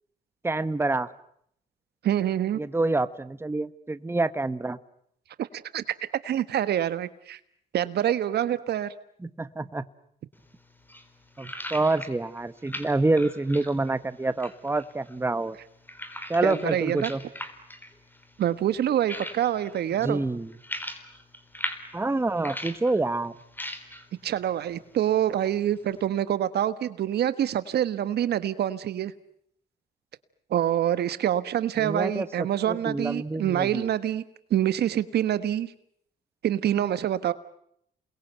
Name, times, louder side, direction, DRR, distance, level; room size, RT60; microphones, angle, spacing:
voice 1, 0.4-1.1 2.6-4.8 9.2-9.8 11.4-15.6 16.3-17.2 20.0-20.5 21.9-23.3 31.8-33.9, right 2 dB, 15° right, 14 dB, 1.2 m, -27 dB
voice 2, 2.0-2.6 5.4-5.5 5.7-5.8 6.2-7.4 7.7-8.9 16.4-17.1 18.4-20.2 24.2-29.1 30.5-34.2 34.5-35.7 36.4-37.3, right 11 dB, 70° right, 14 dB, 1.4 m, -26 dB
sound 1, 10.3-26.1, left 1 dB, 10° left, 3.7 m, -42 dB
28.5 x 22.0 x 9.2 m, 0.71 s
cardioid pair, 80°, 17 cm